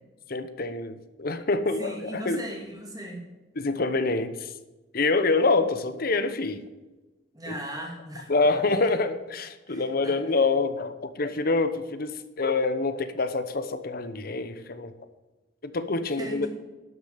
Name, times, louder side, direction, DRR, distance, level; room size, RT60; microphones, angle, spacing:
voice 1, 0.3-2.4 3.6-4.5 4.9-6.7 7.5-7.6 8.3-14.9 15.6-16.5, left 3 dB, 55° left, 11 dB, 0.9 m, -26 dB
voice 2, 1.8-3.3 7.3-8.4 8.6-8.7 9.7-10.2 16.0-16.5, equal, 20° right, 0 dB, 2.4 m, -38 dB
12.0 x 6.7 x 6.7 m, 1.2 s
head